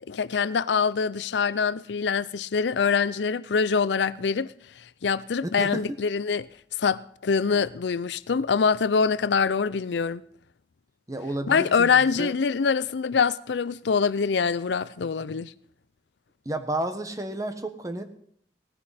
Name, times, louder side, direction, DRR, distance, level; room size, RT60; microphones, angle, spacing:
voice 1, 0.1-4.5 5.0-6.5 6.8-10.2 11.5-15.5, left 5 dB, 70° left, 0.5 m, -24 dB
voice 2, 11.1-12.3 16.4-18.0, right 1 dB, 20° right, 1.3 m, -31 dB
18.0 x 14.5 x 4.3 m
head